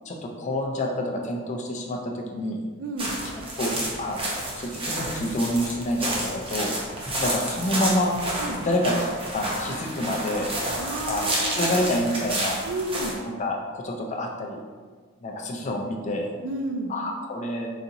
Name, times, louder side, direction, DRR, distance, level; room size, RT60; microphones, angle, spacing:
voice 1, 0.1-2.6 3.6-3.7 4.0-6.7 7.2-8.1 8.6-8.9 9.3-10.5 11.1-12.6 13.4-14.6 15.2-16.3 16.9-17.7, left 1 dB, 35° left, 1 dB, 0.4 m, -28 dB
voice 2, 2.8-3.2 8.4-8.7 10.8-11.7 12.6-13.2 16.4-16.9, right 1 dB, 65° right, 3 dB, 0.4 m, -31 dB
sound 1, 3.0-13.2, right 1 dB, 25° right, 0.6 m, -30 dB
4.0 x 2.8 x 2.6 m, 1.5 s
head